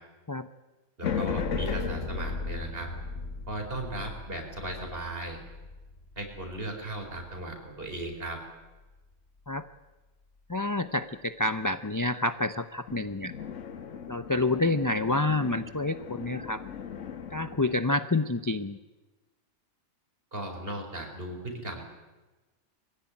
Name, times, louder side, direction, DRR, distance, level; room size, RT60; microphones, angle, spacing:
sound 1, 1.0-7.5 12.9-17.8, left 5 dB, 65° left, 1.6 m, -36 dB
voice 1, 1.0-2.9 3.5-5.4 6.2-8.4 20.3-21.8, right 1 dB, 45° right, 3 dB, 4.9 m, -37 dB
voice 2, 10.5-13.3 14.1-16.6 17.3-18.8, left 2 dB, 20° left, 10 dB, 0.5 m, -28 dB
23.0 x 16.5 x 9.9 m, 1.2 s
omnidirectional pair, 1.4 m